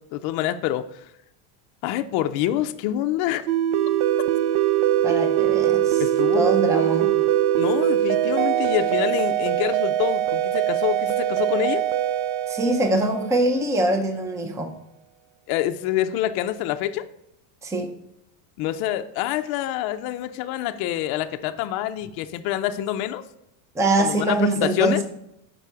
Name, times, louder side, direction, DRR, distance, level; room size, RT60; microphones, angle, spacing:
voice 1, 0.1-0.9 1.8-3.4 6.0-6.5 7.6-11.8 15.5-17.1 18.6-23.2 24.0-24.4 24.6-25.0, left 12 dB, 50° left, 8 dB, 0.5 m, -26 dB
sound 1, 3.5-13.8, right 12 dB, 55° right, 0.5 m, -22 dB
voice 2, 5.0-6.1 6.3-7.1 12.5-14.7 17.6-17.9 23.7-25.0, right 1 dB, 5° right, 3 dB, 0.5 m, -23 dB
5.4 x 4.7 x 5.7 m, 0.83 s
supercardioid pair, 140°, 50 cm